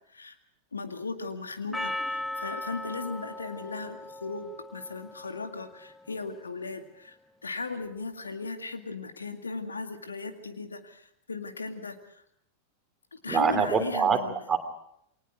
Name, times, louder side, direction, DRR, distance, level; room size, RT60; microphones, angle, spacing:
voice 1, 0.7-7.2 7.4-12.2 13.1-14.3, left 4 dB, 75° left, 7 dB, 2.1 m, -37 dB
Percussion, 1.7-6.2, left 1 dB, 5° left, 0.9 m, -38 dB
voice 2, 13.3-14.6, right 6 dB, 20° right, 7 dB, 3.1 m, -25 dB
29.0 x 23.0 x 4.9 m, 0.72 s
figure-of-eight pair, 90°, 0 cm